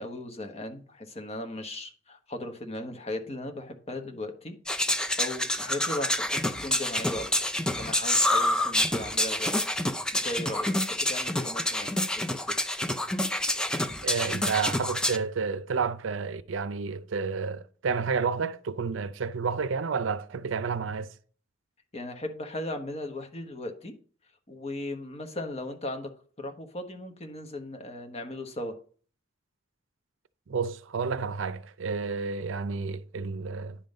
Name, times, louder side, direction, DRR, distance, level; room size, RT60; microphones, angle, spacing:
voice 1, 0.0-7.3 7.8-9.6 10.1-12.5 21.9-23.9 24.5-26.1 26.4-28.7, left 1 dB, 35° left, 1.1 m, -37 dB
sound 1, 4.7-15.2, left 1 dB, 5° left, 0.4 m, -27 dB
voice 2, 14.0-21.1 30.5-33.8, right 5 dB, 75° right, 0.5 m, -30 dB
10.0 x 3.9 x 5.2 m
head